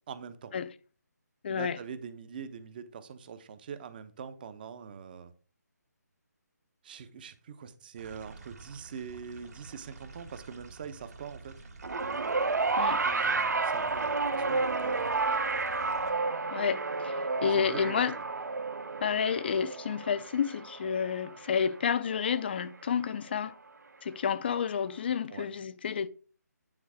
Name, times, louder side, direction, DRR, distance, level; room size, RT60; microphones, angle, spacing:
voice 1, 0.1-0.5 1.5-5.3 6.8-11.5 12.7-15.2 17.5-18.2 25.3-25.5, right 6 dB, 30° right, 0.9 m, -43 dB
voice 2, 1.4-1.8 12.8-13.0 16.5-18.1 19.0-23.5 24.0-26.1, left 7 dB, 35° left, 0.5 m, -30 dB
sound 1, 8.0-16.1, right 4 dB, 65° right, 2.3 m, -50 dB
sound 2, 11.8-22.3 23.3-23.4, right 3 dB, 80° right, 1.1 m, -31 dB
9.7 x 4.0 x 6.1 m
hypercardioid pair, 160°, 9 cm